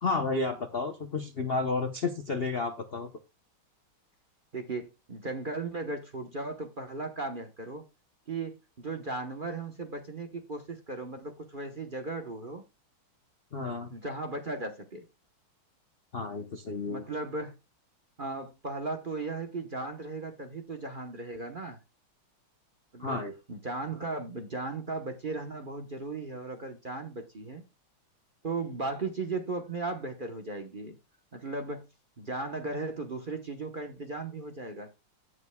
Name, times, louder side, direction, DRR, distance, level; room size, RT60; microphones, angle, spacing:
voice 1, 0.0-3.1 13.5-13.9 16.1-17.1 23.0-23.3, left 3 dB, 60° left, 0.6 m, -31 dB
voice 2, 4.5-7.8 8.3-12.6 13.9-15.0 16.9-17.6 18.2-21.8 22.9-27.6 28.4-31.0 31.3-31.9 32.2-34.9, right 3 dB, 40° right, 0.8 m, -36 dB
17.0 x 6.5 x 2.3 m
omnidirectional pair, 2.3 m